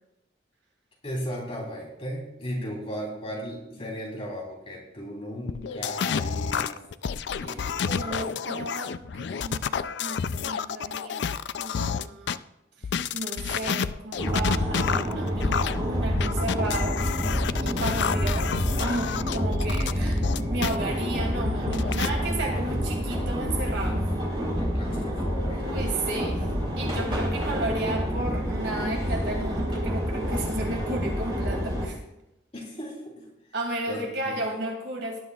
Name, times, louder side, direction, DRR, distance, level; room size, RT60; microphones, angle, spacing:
voice 1, 1.0-6.8 7.4-8.3 20.0-20.1 24.5-25.7 32.5-33.3 33.9-34.3, equal, 30° left, -3 dB, 3.4 m, -37 dB
sound 1, 5.5-12.4 12.8-20.8 21.2-22.1, left 6 dB, 65° left, 0.4 m, -29 dB
voice 2, 7.4-11.3 11.5-12.4 12.8-12.9 13.1-17.0 17.6-24.0 25.7-26.4 26.8-32.0 33.5-35.2, right 2 dB, 70° right, 0 dB, 2.6 m, -33 dB
sound 2, 14.2-31.8, equal, 25° right, 3.9 m, -28 dB
19.0 x 11.0 x 2.4 m, 0.89 s
head